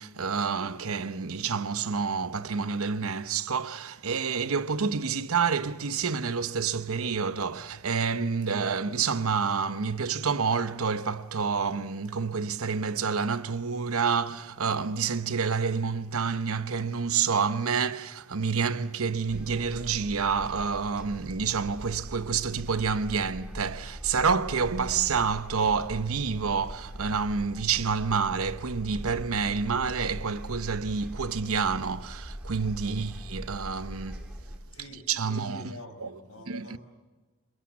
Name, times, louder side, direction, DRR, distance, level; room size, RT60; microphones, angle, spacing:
voice 1, 0.0-34.2 35.1-35.7 36.0-36.1 36.5-36.8, right 5 dB, 75° right, 0.9 m, -28 dB
sound 1, 19.3-34.6, equal, 5° right, 2.6 m, -41 dB
voice 2, 32.7-33.1 34.7-36.8, left 1 dB, 70° left, 4.9 m, -48 dB
27.5 x 22.5 x 7.3 m
head